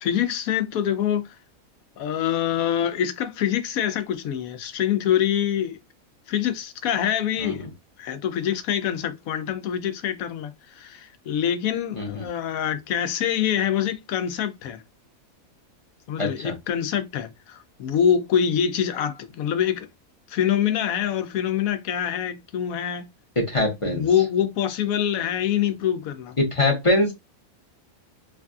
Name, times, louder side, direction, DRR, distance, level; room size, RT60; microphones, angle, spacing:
voice 1, 0.0-1.4 2.0-5.8 6.3-7.7 8.0-14.8 16.1-19.9 20.3-23.0 23.8-26.4, left 9 dB, 80° left, 1.0 m, -25 dB
voice 2, 11.9-12.3 16.2-16.5 23.4-24.1 26.4-27.1, left 2 dB, 30° left, 0.7 m, -23 dB
3.2 x 2.5 x 2.3 m
omnidirectional pair, 1.5 m